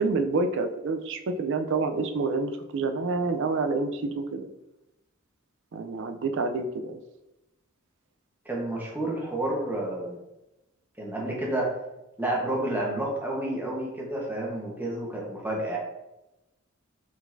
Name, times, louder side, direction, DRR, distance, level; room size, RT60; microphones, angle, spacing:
voice 1, 0.0-4.5 5.7-7.0, right 3 dB, 60° right, 7 dB, 0.5 m, -28 dB
voice 2, 8.4-10.2 11.0-11.7 12.2-15.8, right 1 dB, 10° right, -3 dB, 1.1 m, -30 dB
4.8 x 3.9 x 2.6 m, 0.94 s
head